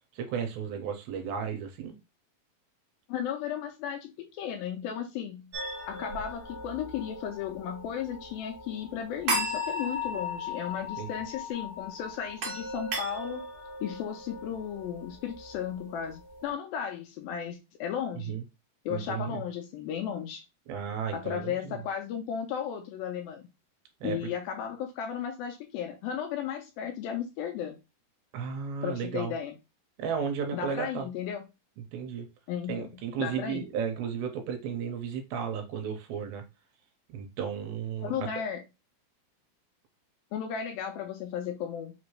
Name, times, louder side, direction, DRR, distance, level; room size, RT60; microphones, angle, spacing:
voice 1, 0.1-1.9 11.0-11.1 18.3-18.4 18.9-19.4 20.7-21.8 24.0-24.2 28.3-29.3 30.0-31.1 31.9-32.3 32.7-36.4 37.1-38.2, right 7 dB, 80° right, 2.5 m, -34 dB
voice 2, 3.1-5.5 5.9-13.4 13.8-18.4 18.9-20.5 21.1-23.5 24.0-27.8 28.8-29.6 30.5-31.4 32.5-33.7 38.0-38.6 40.3-41.9, left 8 dB, 80° left, 2.2 m, -35 dB
sound 1, 5.5-16.5, left 1 dB, 60° right, 1.6 m, -37 dB
5.8 x 2.6 x 3.1 m
omnidirectional pair, 4.6 m